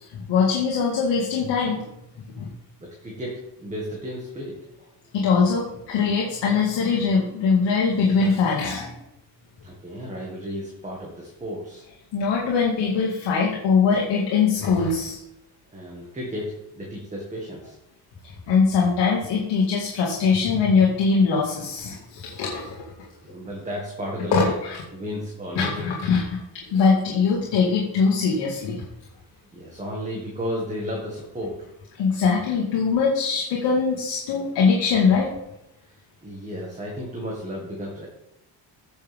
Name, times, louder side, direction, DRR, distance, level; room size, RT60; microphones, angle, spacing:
voice 1, 0.3-1.8 2.4-2.5 5.1-9.0 12.1-15.2 18.5-23.1 24.3-24.8 25.6-26.4 26.7-28.8 32.0-35.3, left 5 dB, 75° left, -3 dB, 2.2 m, -22 dB
voice 2, 2.8-4.6 9.6-11.8 15.7-17.8 23.2-24.5 24.9-25.8 29.5-31.6 36.2-38.1, equal, 15° right, -3 dB, 1.9 m, -33 dB
16.0 x 7.0 x 3.6 m, 0.84 s
cardioid pair, 150°, 44 cm